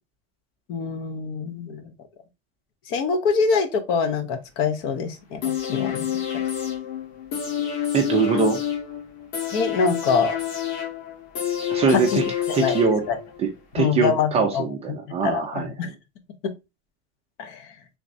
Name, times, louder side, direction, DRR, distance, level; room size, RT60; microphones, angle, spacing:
voice 1, 0.7-1.9 2.9-6.1 9.5-10.3 11.9-12.2 12.5-12.8 13.1-13.2 13.8-14.6 15.1-15.9 16.4-16.5 17.4-17.7, left 5 dB, 45° left, 0.6 m, -24 dB
sound 1, 5.4-13.4 13.7-13.8, left 9 dB, 75° left, 1.6 m, -28 dB
voice 2, 7.9-8.6 11.7-12.2 12.5-13.0 13.4-13.5 13.7-15.7, right 5 dB, 20° right, 0.4 m, -22 dB
3.5 x 3.0 x 2.6 m
supercardioid pair, 160°, 32 cm